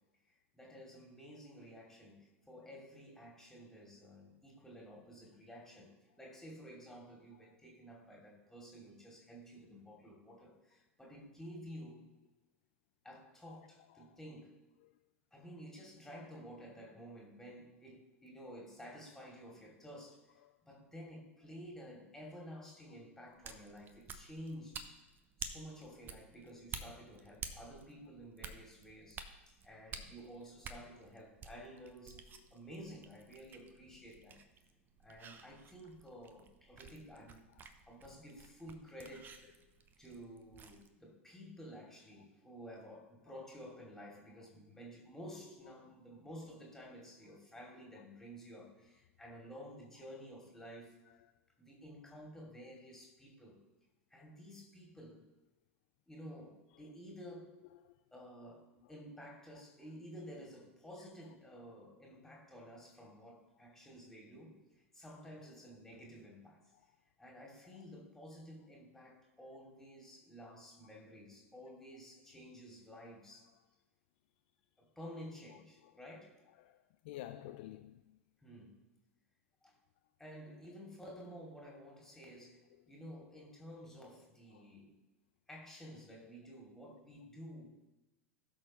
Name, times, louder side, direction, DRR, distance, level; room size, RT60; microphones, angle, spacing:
voice 1, 0.5-5.9 6.2-12.0 13.0-14.5 15.3-20.4 20.6-24.8 25.4-32.2 32.5-34.4 35.0-37.4 37.9-39.4 40.0-51.0 51.6-53.6 54.1-55.2 56.1-57.5 58.1-64.6 64.9-66.6 67.2-73.5 74.8-76.4 78.4-78.8 79.6-79.7 80.2-82.6 82.9-84.9 85.5-87.9, equal, 5° left, 2.8 m, -52 dB
sound 1, 23.3-40.9, right 5 dB, 25° right, 0.8 m, -51 dB
voice 2, 76.6-78.0 84.5-84.7, left 13 dB, 50° left, 0.5 m, -51 dB
17.0 x 6.3 x 3.1 m
figure-of-eight pair, 85°, 7 cm